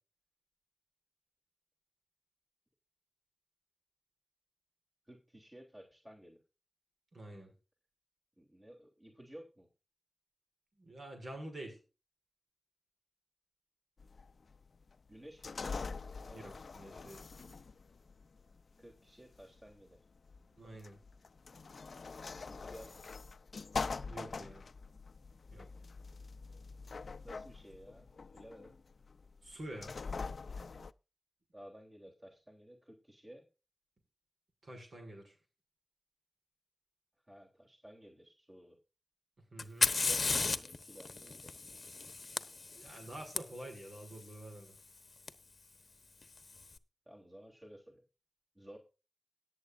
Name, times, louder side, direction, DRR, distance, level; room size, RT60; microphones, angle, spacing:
voice 1, 5.1-6.4 8.4-9.7 15.1-15.6 16.2-16.5 18.8-20.0 22.5-23.0 24.3-24.6 27.2-28.8 31.5-33.5 37.3-38.8 39.6-41.5 47.1-48.0 48.6-48.8, equal, 20° right, 0 dB, 3.4 m, -55 dB
voice 2, 7.1-7.5 10.8-11.8 16.3-17.2 20.5-21.0 24.1-24.6 25.5-25.7 29.4-29.9 34.6-35.3 39.5-39.9 42.7-44.8, right 1 dB, 60° right, 4 dB, 6.5 m, -48 dB
sound 1, 14.0-30.9, left 4 dB, 60° left, 0.6 m, -44 dB
Fire, 39.6-43.4 45.3-45.4 46.2-46.6, left 3 dB, 45° left, 1.1 m, -34 dB
18.0 x 8.5 x 2.6 m, 0.30 s
wide cardioid pair, 80°, 0 cm